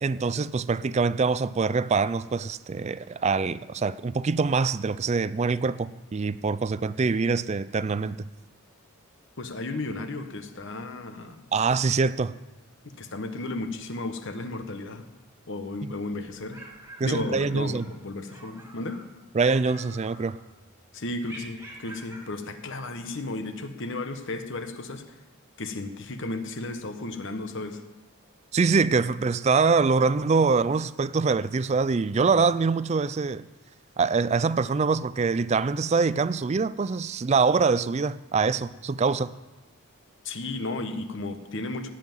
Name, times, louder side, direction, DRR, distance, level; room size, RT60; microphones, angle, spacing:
voice 1, 0.0-8.3 11.5-12.3 17.0-17.9 19.3-20.4 28.5-33.4 34.0-39.3, right 4 dB, 30° right, 0.3 m, -24 dB
voice 2, 9.4-11.4 12.8-15.1 15.5-16.6 17.0-19.0 20.9-25.2 25.6-27.8 40.2-41.9, left 2 dB, 55° left, 1.1 m, -34 dB
sound 1, 16.5-17.9 18.3-19.1 19.4-20.6 21.2-22.3, right 1 dB, 10° right, 2.0 m, -46 dB
17.0 x 5.8 x 9.0 m
head